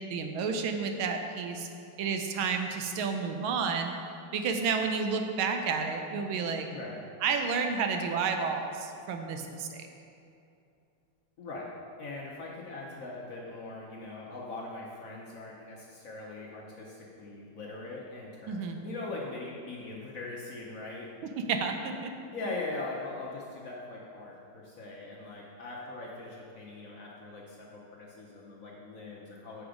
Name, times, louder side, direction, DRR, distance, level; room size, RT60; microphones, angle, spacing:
voice 1, 0.1-1.7 2.0-3.9 4.3-6.6 7.2-9.8 18.5-18.8 21.5-21.8 22.0-22.1, right 5 dB, 85° right, 5 dB, 1.5 m, -30 dB
voice 2, 6.6-7.0 11.4-21.1 22.3-29.6, left 2 dB, 55° left, -4 dB, 1.0 m, -41 dB
7.7 x 5.9 x 5.0 m, 2.6 s
omnidirectional pair, 2.3 m